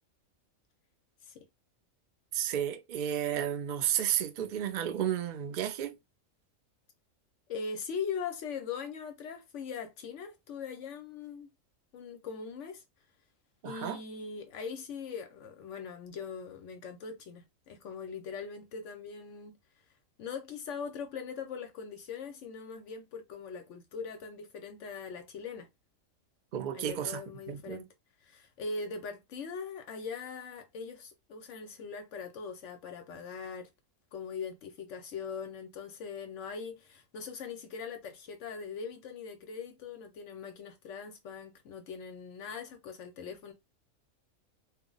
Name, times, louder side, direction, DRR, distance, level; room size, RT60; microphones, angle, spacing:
voice 1, 2.3-6.0 13.6-14.0 26.5-27.2 27.5-27.8, right 10 dB, 80° right, 0.4 m, -32 dB
voice 2, 7.5-11.5 11.9-12.8 13.6-19.6 20.2-25.7 26.7-27.9 28.2-33.7 34.1-43.5, left 5 dB, 70° left, 0.9 m, -41 dB
2.3 x 2.0 x 3.7 m
omnidirectional pair, 1.4 m